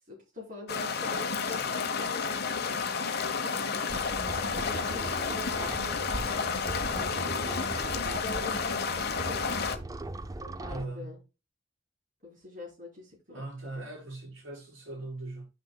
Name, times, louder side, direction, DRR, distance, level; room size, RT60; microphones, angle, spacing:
voice 1, 0.1-4.0 4.6-7.6 8.1-9.8 10.4-11.2 12.2-13.4, left 2 dB, 40° right, 4.2 m, -45 dB
sound 1, 0.7-9.8, left 5 dB, 55° left, 1.0 m, -31 dB
sound 2, 3.9-10.9, right 2 dB, 20° right, 0.4 m, -39 dB
voice 2, 10.7-11.2 13.3-15.5, right 2 dB, 75° right, 4.6 m, -40 dB
10.5 x 6.1 x 2.3 m
head